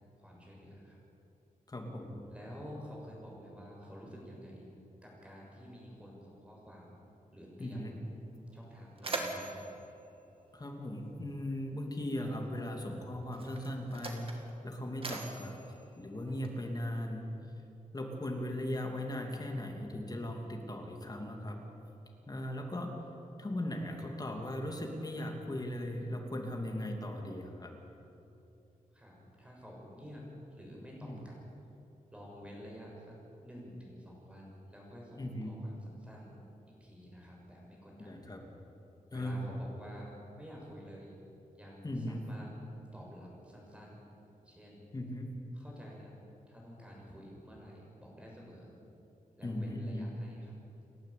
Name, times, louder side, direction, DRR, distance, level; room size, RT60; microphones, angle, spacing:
voice 1, 0.2-1.0 2.3-4.7 5.0-7.0 7.3-8.0 8.5-9.7 28.9-31.4 32.1-36.4 36.6-38.2 39.1-41.2 41.5-42.5 42.9-44.1 44.4-44.9 45.5-46.2 46.5-48.7 49.4-50.5, equal, 10° right, -3 dB, 6.8 m, -50 dB
voice 2, 1.7-2.2 7.6-7.9 10.5-15.5 16.0-17.3 17.9-21.6 22.3-22.9 23.4-27.7 31.0-31.2 35.2-35.5 38.0-38.4 39.1-39.6 41.8-42.2 44.9-45.3 49.4-50.1, left 1 dB, 25° left, 2 dB, 2.9 m, -38 dB
Mechanisms, 8.1-8.2 8.5-11.3 12.3-12.4 13.2-16.8, right 3 dB, 40° right, 2.2 m, -43 dB
29.5 x 12.0 x 8.7 m, 2.9 s
wide cardioid pair, 140°, 14 cm